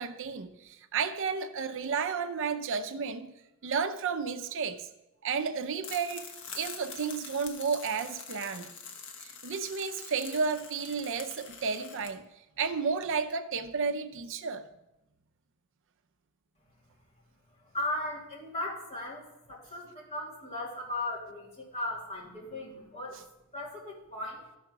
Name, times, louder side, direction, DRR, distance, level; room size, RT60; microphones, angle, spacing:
voice 1, 0.0-3.3 3.6-4.9 5.2-6.2 6.5-8.7 9.2-12.3 12.6-14.7, right 5 dB, 60° right, 0.5 m, -32 dB
sound 1, 5.8-12.1, left 5 dB, 60° left, 1.2 m, -45 dB
voice 2, 17.7-23.2 23.5-24.5, left 1 dB, 30° left, 2.5 m, -37 dB
13.0 x 4.7 x 5.9 m
head